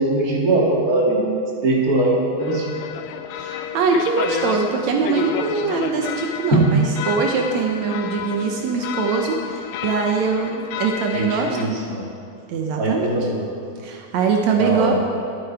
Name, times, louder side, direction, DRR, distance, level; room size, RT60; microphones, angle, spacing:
voice 1, 0.0-1.3 1.6-2.8 6.5-6.6 11.1-12.0 12.8-13.5 14.6-14.9, right 2 dB, 30° right, -3 dB, 2.1 m, -20 dB
sound 1, 2.4-11.6, left 9 dB, 80° left, 2.3 m, -30 dB
voice 2, 3.3-11.6 12.5-13.1 13.8-14.9, right 5 dB, 90° right, 2 dB, 1.5 m, -22 dB
22.5 x 8.5 x 4.7 m, 2.4 s
omnidirectional pair, 4.5 m